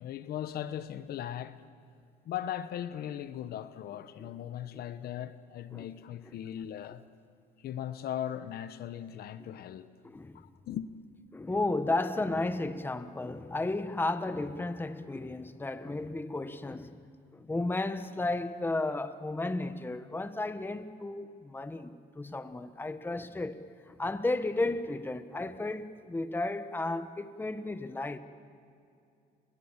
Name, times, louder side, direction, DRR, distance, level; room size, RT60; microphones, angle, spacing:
voice 1, 0.0-1.6 2.2-7.0 7.6-9.9 10.3-10.9, left 10 dB, 65° left, 1.0 m, -38 dB
voice 2, 10.0-10.4 11.3-17.0 17.3-28.2, left 2 dB, 10° left, 1.3 m, -33 dB
30.0 x 21.5 x 7.4 m
cardioid pair, 110°, 17 cm